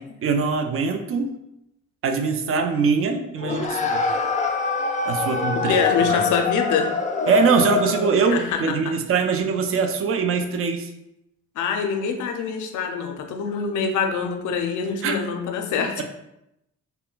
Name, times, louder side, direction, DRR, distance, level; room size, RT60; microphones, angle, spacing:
voice 1, 0.2-1.3 2.0-4.0 5.1-5.8 6.1-6.2 7.3-10.9 15.0-15.2, right 5 dB, 45° right, 5 dB, 0.5 m, -22 dB
sound 1, 3.4-8.3, left 3 dB, 25° left, 0.4 m, -25 dB
voice 2, 5.5-6.9 8.2-8.9 11.6-16.0, left 6 dB, 80° left, 4 dB, 0.5 m, -25 dB
2.2 x 2.1 x 3.8 m, 0.85 s
cardioid pair, 90°, 30 cm